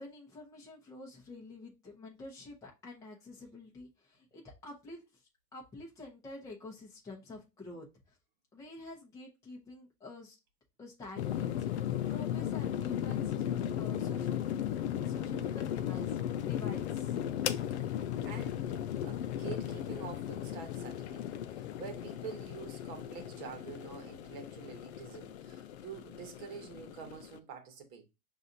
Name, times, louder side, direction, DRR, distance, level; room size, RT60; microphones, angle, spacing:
voice 1, 0.0-8.2 8.5-10.4 10.8-11.7 12.1-14.4 15.0-17.2, left 2 dB, 5° left, 0.9 m, -48 dB
sound 1, 11.2-27.4, left 10 dB, 50° left, 0.5 m, -36 dB
voice 2, 18.2-21.3 21.5-28.0, right 6 dB, 35° right, 1.3 m, -47 dB
5.8 x 2.7 x 2.6 m
hypercardioid pair, 150°, 44 cm